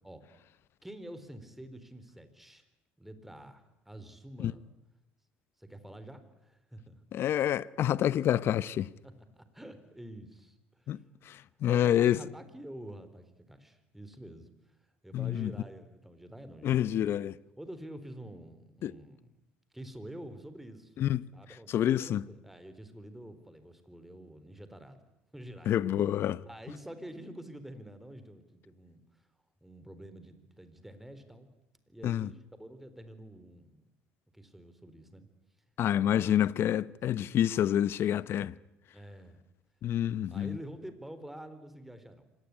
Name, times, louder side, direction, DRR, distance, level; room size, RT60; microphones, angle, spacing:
voice 1, 0.8-2.7 3.0-4.7 5.6-7.0 9.0-11.0 11.7-17.0 17.6-19.4 19.7-21.0 21.3-25.8 26.5-29.3 29.6-31.5 31.9-33.8 34.3-35.3 36.0-36.4 36.8-37.0 38.9-39.4 40.3-42.3, right 1 dB, 5° right, 4.1 m, -48 dB
voice 2, 7.1-8.9 10.9-12.2 15.1-15.5 16.6-17.3 18.8-18.9 21.0-21.3 21.7-22.3 25.7-26.4 32.0-32.3 35.8-38.6 39.8-40.6, left 11 dB, 55° left, 0.9 m, -28 dB
25.0 x 19.0 x 9.9 m
supercardioid pair, 85°, 5 cm